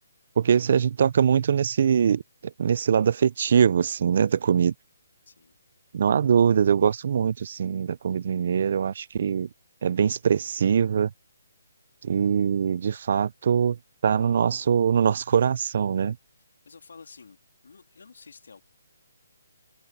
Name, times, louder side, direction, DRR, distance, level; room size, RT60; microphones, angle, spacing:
voice 1, 0.4-4.7 5.9-9.5 9.8-11.1 12.0-13.8 14.0-16.2, right 7 dB, 45° right, 0.4 m, -22 dB
voice 2, 5.2-5.6 15.8-16.0 16.6-17.4 17.6-18.6, left 5 dB, 75° left, 3.3 m, -50 dB
hypercardioid pair, 170°, 0 cm